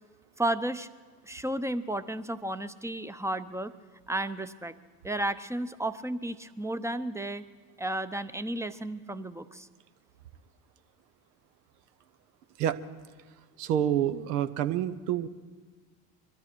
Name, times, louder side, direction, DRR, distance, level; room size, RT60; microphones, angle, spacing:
voice 1, 0.4-0.9 1.3-3.7 4.1-4.7 5.0-7.4 7.8-9.7, right 1 dB, 5° right, 12 dB, 0.7 m, -33 dB
voice 2, 13.6-15.3, right 10 dB, 80° right, 12 dB, 0.9 m, -28 dB
22.5 x 13.0 x 4.5 m, 1.4 s
hypercardioid pair, 70°, 46 cm